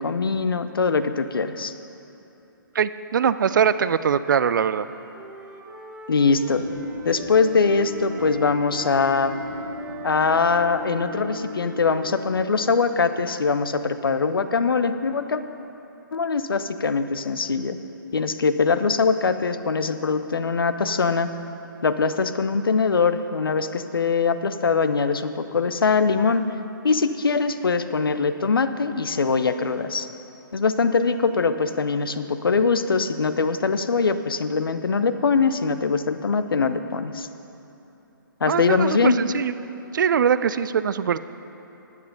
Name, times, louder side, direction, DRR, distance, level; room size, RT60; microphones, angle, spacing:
voice 1, 0.0-1.7 6.1-6.6 7.0-9.3 10.0-15.4 16.1-17.8 18.1-21.3 21.8-26.5 26.8-30.1 30.5-37.3 38.4-39.2, left 4 dB, 80° left, 10 dB, 0.7 m, -22 dB
voice 2, 2.7-4.9 38.4-39.5 39.9-41.2, right 7 dB, 60° right, 14 dB, 0.4 m, -22 dB
Wind instrument woodwind instrument, 4.7-8.5 8.7-12.8, right 3 dB, 10° right, 1.1 m, -42 dB
sound 1, 6.5-13.1, left 2 dB, 75° right, 1.4 m, -37 dB
10.5 x 9.2 x 5.9 m, 3.0 s
figure-of-eight pair, 140°, 12 cm